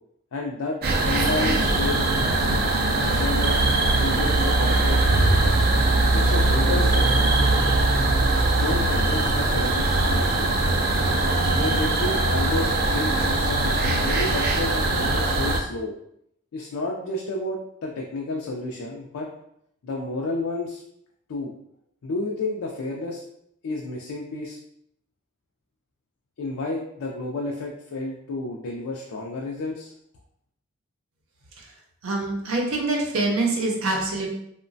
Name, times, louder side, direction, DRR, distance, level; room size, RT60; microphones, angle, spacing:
voice 1, 0.3-0.8 1.0-2.0 3.0-3.6 4.0-5.6 6.1-7.1 8.5-10.5 11.5-15.9 16.5-19.3 19.8-20.8 21.3-21.5 22.0-23.2 23.6-24.6 26.4-29.9, left 2 dB, 90° left, -1 dB, 0.4 m, -31 dB
sound 1, 0.8-15.6, right 2 dB, 45° right, 0.3 m, -21 dB
voice 2, 32.0-34.3, right 2 dB, 85° right, -1 dB, 0.7 m, -25 dB
2.9 x 2.1 x 2.6 m, 0.73 s
head